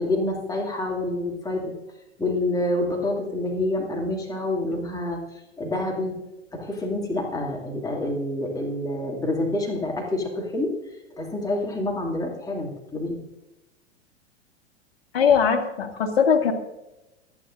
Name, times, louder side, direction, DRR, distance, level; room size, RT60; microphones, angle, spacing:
voice 1, 0.0-1.8 2.2-6.2 6.5-13.2, left 1 dB, 10° left, -1 dB, 2.5 m, -27 dB
voice 2, 15.1-16.5, left 7 dB, 55° left, 4 dB, 1.8 m, -20 dB
28.5 x 9.7 x 2.6 m, 0.97 s
figure-of-eight pair, 95°, 35 cm